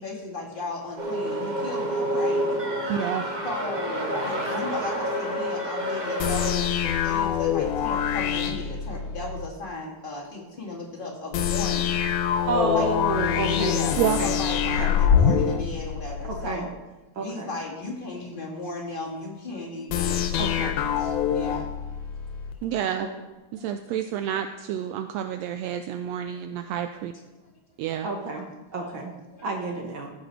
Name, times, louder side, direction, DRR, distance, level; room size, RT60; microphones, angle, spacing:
voice 1, 0.0-2.4 3.4-12.1 12.7-12.9 13.5-16.7 17.2-20.5 21.0-21.7 23.6-23.7 26.3-26.4 28.0-28.5 28.7-28.9 29.3-29.5, left 2 dB, 20° left, -2 dB, 1.7 m, -36 dB
sound 1, 1.0-6.5, equal, 25° right, 0.9 m, -28 dB
voice 2, 2.9-3.3 14.0-14.2 22.6-23.1 23.5-27.1 27.8-28.1, right 10 dB, 85° right, 8 dB, 1.5 m, -29 dB
sound 2, 6.2-9.5 11.3-16.6 19.9-22.6, left 8 dB, 85° left, 2.2 m, -25 dB
voice 3, 12.5-14.3 14.8-14.9 16.2-16.7 17.1-17.5 20.4-20.8 23.0-23.1 28.0-28.5 28.7-29.1 29.4-30.1, right 2 dB, 55° right, 2 dB, 1.5 m, -29 dB
15.0 x 6.7 x 4.5 m, 1.1 s
omnidirectional pair, 3.4 m